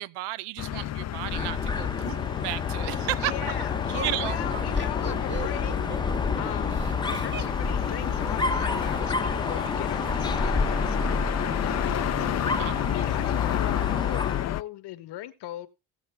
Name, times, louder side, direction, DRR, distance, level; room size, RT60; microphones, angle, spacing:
voice 1, 0.0-3.6 4.0-4.4 12.6-12.7, right 17 dB, 85° right, 0.6 m, -33 dB
sound 1, 0.6-14.6, left 12 dB, 40° left, 0.5 m, -30 dB
Dog, 1.2-14.5, left 3 dB, 10° left, 0.8 m, -30 dB
voice 2, 3.2-5.8 6.4-12.5 12.8-15.7, left 14 dB, 75° left, 1.2 m, -39 dB
Laughter, 3.9-9.0 10.0-10.9 11.2-11.3 11.6-12.1, right 7 dB, 25° right, 0.6 m, -41 dB
17.5 x 7.2 x 3.3 m
supercardioid pair, 85°, 41 cm